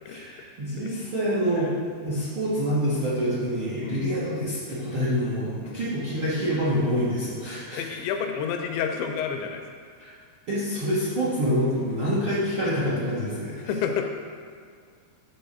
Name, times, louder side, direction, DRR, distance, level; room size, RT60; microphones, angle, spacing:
voice 1, 0.0-7.8 10.0-10.1 10.5-13.6, equal, 55° right, -10 dB, 1.4 m, -26 dB
voice 2, 3.8-4.3 5.6-5.8 7.8-9.6 13.7-14.0, left 7 dB, 90° left, 4 dB, 3.0 m, -30 dB
8.9 x 4.0 x 6.7 m, 2.1 s
omnidirectional pair, 5.2 m